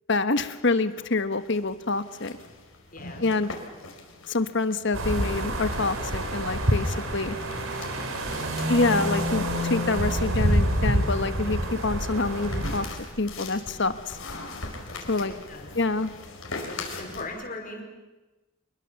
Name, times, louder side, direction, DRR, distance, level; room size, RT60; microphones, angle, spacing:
voice 1, 0.1-2.4 3.2-3.5 4.3-7.3 8.7-12.9 13.2-14.2 15.1-15.3 15.7-16.1, left 3 dB, 60° left, 11 dB, 1.3 m, -26 dB
sound 1, 0.6-17.3, left 3 dB, 85° left, 4.9 m, -42 dB
voice 2, 2.9-3.2 6.9-7.2 15.5-15.7 16.7-17.8, left 2 dB, 40° left, 2 dB, 5.2 m, -39 dB
sound 2, 4.9-12.9, equal, 80° right, 3.9 m, -27 dB
27.0 x 22.0 x 7.1 m, 1.1 s
head